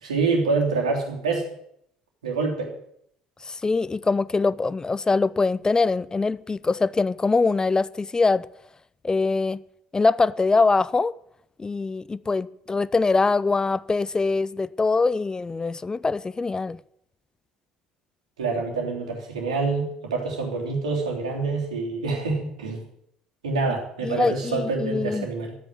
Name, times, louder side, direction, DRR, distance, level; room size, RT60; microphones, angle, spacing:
voice 1, 0.0-1.5 2.2-2.7 18.4-22.8 23.4-25.5, right 4 dB, 85° right, 3.2 m, -26 dB
voice 2, 3.4-8.5 9.0-9.6 9.9-11.1 11.6-16.8 24.0-25.3, left 3 dB, 20° left, 0.5 m, -23 dB
12.5 x 9.0 x 9.0 m
hypercardioid pair, 60°, 3 cm